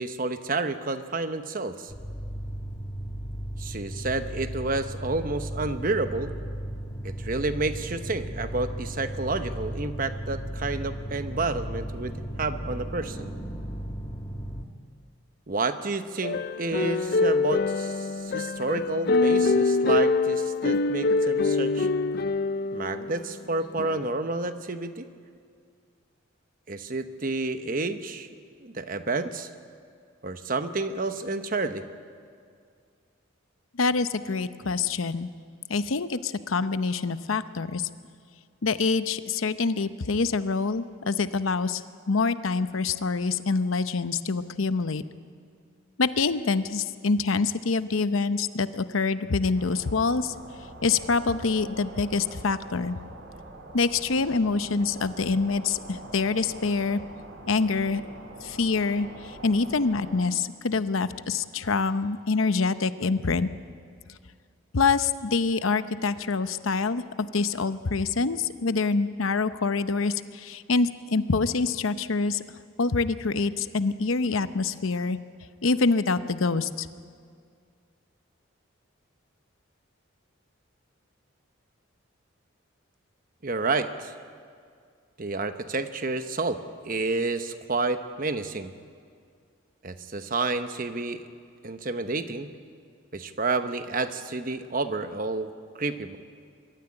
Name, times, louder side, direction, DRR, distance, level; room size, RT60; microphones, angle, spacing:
voice 1, 0.0-1.9 3.6-6.3 7.0-13.3 15.5-21.9 22.7-25.1 26.7-28.3 28.6-29.5 30.2-31.8 83.4-84.1 85.2-86.6 86.8-88.7 89.8-91.3 91.6-92.5 93.1-95.5 95.8-96.2, right 3 dB, 40° right, 9 dB, 1.0 m, -30 dB
sound 1, 1.9-14.6, equal, 20° left, 1.2 m, -35 dB
sound 2, 16.2-23.2 23.8-24.1, left 3 dB, 50° left, 0.5 m, -25 dB
voice 2, 33.8-35.3 35.7-37.9 38.6-41.8 42.1-45.0 46.0-50.3 50.8-53.0 53.7-57.0 57.5-58.0 58.4-63.5 64.7-72.4 72.8-75.2 75.6-76.9, left 4 dB, 80° left, 12 dB, 0.8 m, -26 dB
sound 3, 49.5-60.3, right 2 dB, 60° right, 2.6 m, -44 dB
23.0 x 13.5 x 9.9 m, 2.2 s
head